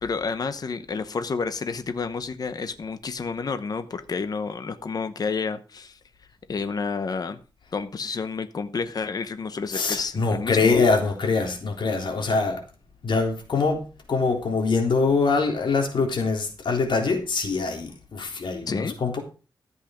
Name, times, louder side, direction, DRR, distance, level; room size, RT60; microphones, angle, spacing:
voice 1, 0.0-6.0 6.5-7.4 7.7-10.8 18.7-18.9, left 5 dB, 50° left, 1.0 m, -30 dB
voice 2, 9.7-12.6 13.0-19.2, left 4 dB, 65° left, 3.7 m, -24 dB
13.5 x 8.4 x 5.1 m
wide cardioid pair, 140°, 9 cm